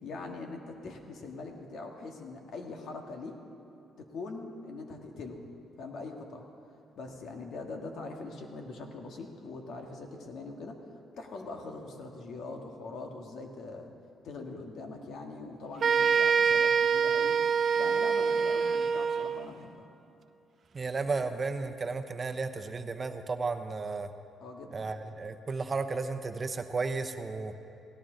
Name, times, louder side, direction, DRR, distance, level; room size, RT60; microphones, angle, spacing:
voice 1, 0.0-3.4 4.0-5.4 5.8-6.4 7.0-10.8 11.2-13.9 14.2-17.4 17.8-19.9 24.4-24.9, left 3 dB, 70° left, 3 dB, 1.7 m, -42 dB
sound 1, 15.8-19.5, right 6 dB, 50° right, 0.5 m, -25 dB
voice 2, 20.7-24.1 24.7-27.5, right 4 dB, 35° right, 8 dB, 0.8 m, -33 dB
17.5 x 17.0 x 3.9 m, 2.8 s
cardioid pair, 90°, 0 cm